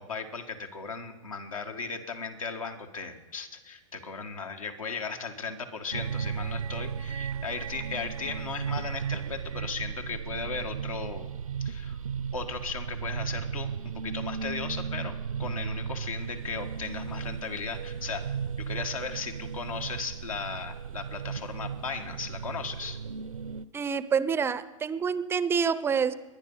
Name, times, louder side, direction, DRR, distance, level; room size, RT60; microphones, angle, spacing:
voice 1, 0.0-11.3 11.6-12.0 12.3-23.0, left 5 dB, 80° left, 4 dB, 1.9 m, -37 dB
sound 1, 5.9-23.7, right 7 dB, 85° right, 0.7 m, -35 dB
voice 2, 23.7-26.1, right 6 dB, 15° right, 15 dB, 0.5 m, -27 dB
22.5 x 10.0 x 5.6 m, 1.2 s
hypercardioid pair, 115°, 17 cm